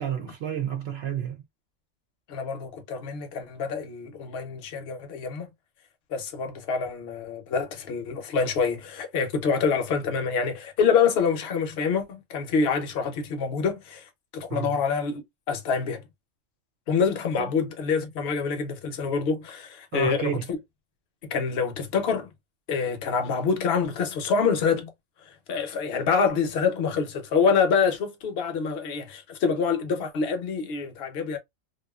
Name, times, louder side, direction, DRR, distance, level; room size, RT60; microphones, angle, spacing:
voice 1, 0.0-1.4 14.5-14.8 17.4-17.5 19.9-20.5, right 8 dB, 65° right, 0.7 m, -30 dB
voice 2, 2.3-5.5 6.1-14.0 14.3-16.0 16.9-20.4 21.3-22.3 22.7-24.9 25.5-31.4, left 5 dB, 60° left, 0.9 m, -26 dB
2.5 x 2.3 x 2.2 m
omnidirectional pair, 1.2 m